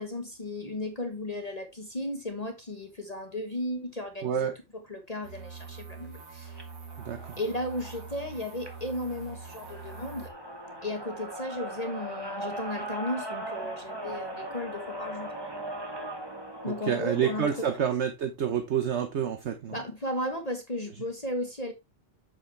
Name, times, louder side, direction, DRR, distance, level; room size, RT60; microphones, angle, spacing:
voice 1, 0.0-6.6 7.4-10.3 10.8-15.3 16.6-17.5 17.8-18.0 19.7-21.7, left 1 dB, 30° left, 1.4 m, -35 dB
voice 2, 4.2-4.5 7.0-7.4 16.7-19.8, right 8 dB, 60° right, 1.2 m, -28 dB
sound 1, 5.2-10.3, right 5 dB, 85° right, 2.1 m, -44 dB
sound 2, 6.4-17.9, right 1 dB, 20° right, 1.8 m, -39 dB
8.3 x 7.1 x 3.2 m
omnidirectional pair, 1.4 m